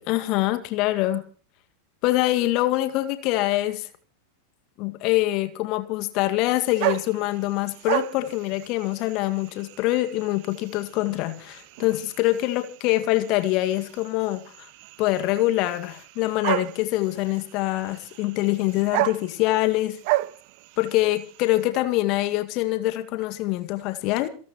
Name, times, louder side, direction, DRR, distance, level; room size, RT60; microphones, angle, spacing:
voice 1, 0.1-1.2 2.0-3.9 4.8-14.7 15.0-20.0 20.8-24.3, left 17 dB, 40° left, 9 dB, 2.0 m, -24 dB
sound 1, 6.5-21.6, right 19 dB, 45° right, 0.6 m, -33 dB
27.5 x 12.0 x 3.0 m, 0.40 s
figure-of-eight pair, 90°, 0 cm